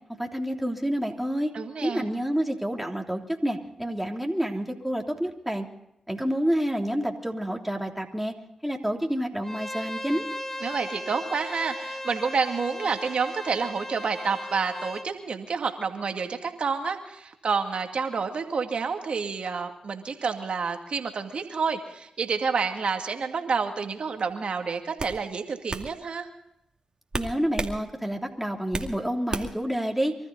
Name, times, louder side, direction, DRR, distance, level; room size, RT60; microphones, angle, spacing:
voice 1, 0.2-1.5 1.8-5.7 6.1-8.3 8.6-10.2 27.1-30.2, equal, 5° right, 1 dB, 3.3 m, -28 dB
voice 2, 1.5-2.1 10.6-26.3, right 5 dB, 65° right, 5 dB, 2.3 m, -29 dB
Bowed string instrument, 9.4-15.1, left 1 dB, 15° left, 1.4 m, -37 dB
sound 1, 24.2-24.4 25.0-25.2 25.7-25.9 27.1-27.8 28.1-28.9 29.3-29.7, right 3 dB, 40° right, 2.3 m, -31 dB
24.5 x 13.5 x 4.1 m, 0.79 s
supercardioid pair, 40°, 2 cm